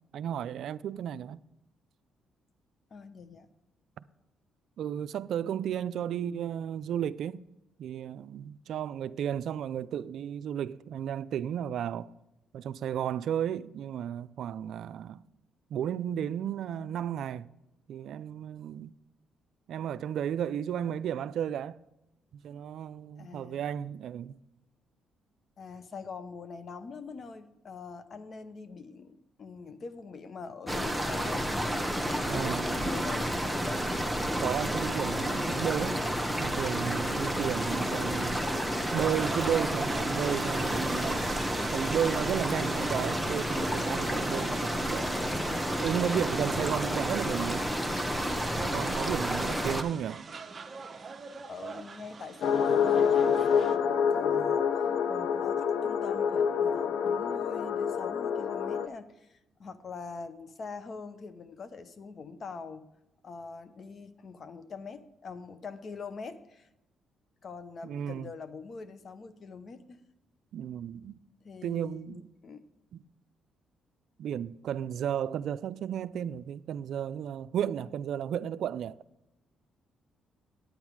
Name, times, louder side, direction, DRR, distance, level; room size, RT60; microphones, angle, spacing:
voice 1, 0.1-1.4 4.8-7.4 7.8-12.1 12.5-15.2 15.7-17.5 17.9-18.9 19.7-21.8 22.3-24.4 32.3-32.6 34.4-36.0 36.4-38.4 38.9-41.4 41.7-45.1 45.8-47.7 48.6-50.3 53.3-53.5 67.8-68.3 70.5-71.2 71.6-72.2 72.9-73.0 74.2-79.0, right 9 dB, 70° right, 0.3 m, -33 dB
voice 2, 2.9-3.5 23.2-23.7 25.6-31.8 32.3-33.3 49.1-49.6 51.5-54.8 55.1-62.8 63.2-66.7 67.4-70.0 71.4-72.7, left 4 dB, 50° left, 0.8 m, -44 dB
sound 1, 30.7-49.8, equal, ahead, 0.9 m, -30 dB
sound 2, 39.2-53.8, right 5 dB, 35° right, 0.9 m, -44 dB
sound 3, 52.4-58.9, left 7 dB, 75° left, 0.5 m, -27 dB
9.2 x 9.0 x 4.7 m
cardioid pair, 90°, 0 cm